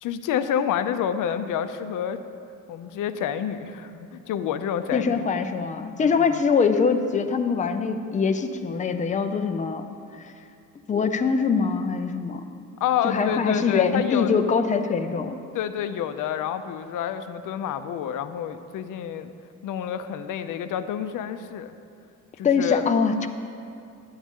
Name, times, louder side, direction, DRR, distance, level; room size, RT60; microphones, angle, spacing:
voice 1, 0.0-2.2 2.7-5.2 6.0-6.3 12.8-14.3 15.5-19.3 19.6-21.7 22.4-22.8, left 9 dB, 80° left, 10 dB, 0.6 m, -28 dB
voice 2, 4.9-9.9 10.2-10.3 10.9-12.5 13.0-15.4 22.4-23.3, left 5 dB, 25° left, 7 dB, 0.4 m, -23 dB
10.5 x 8.7 x 3.6 m, 2.5 s
cardioid pair, 145°, 31 cm